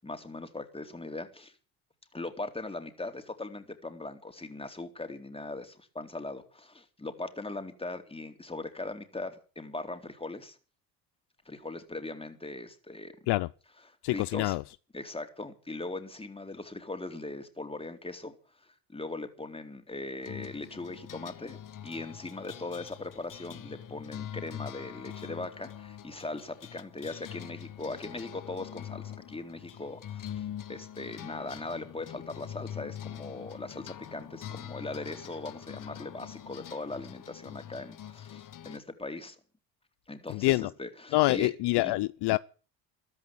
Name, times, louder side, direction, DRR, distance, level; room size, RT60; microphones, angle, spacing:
voice 1, 0.0-1.5 2.1-10.6 11.5-13.2 13.9-14.5 14.9-21.6 21.8-39.4 40.1-41.5 41.8-41.9, left 2 dB, 10° left, 3.9 m, -40 dB
voice 2, 14.0-14.6 40.3-40.7 41.1-42.4, left 19 dB, 60° left, 0.7 m, -26 dB
sound 1, 20.2-38.8, left 10 dB, 45° left, 1.5 m, -44 dB
14.5 x 12.5 x 8.0 m
supercardioid pair, 75°, 45 cm